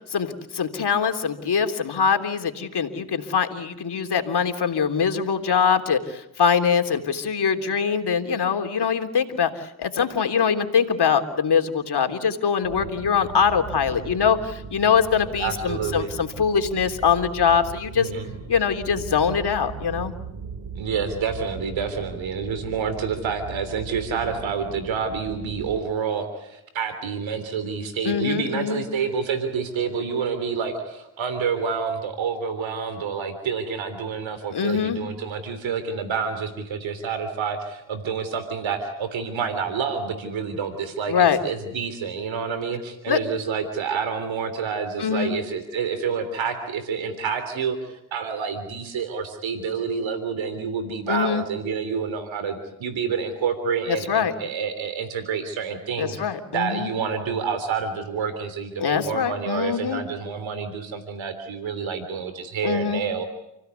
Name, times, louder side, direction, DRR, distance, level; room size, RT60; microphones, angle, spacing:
voice 1, 0.1-18.1 18.5-20.1 28.0-28.8 34.5-35.0 41.1-41.4 43.1-43.2 45.0-45.3 51.1-51.4 53.9-54.3 56.0-56.9 58.8-60.0 62.6-63.0, left 6 dB, 55° left, 5 dB, 3.4 m, -23 dB
sound 1, 12.6-25.8, right 5 dB, 60° right, 3.2 m, -38 dB
voice 2, 15.4-16.1 18.0-18.3 20.8-41.1 41.4-56.2 56.5-63.2, right 6 dB, 75° right, 10 dB, 3.4 m, -28 dB
29.5 x 16.5 x 8.2 m, 0.87 s
supercardioid pair, 55°, 46 cm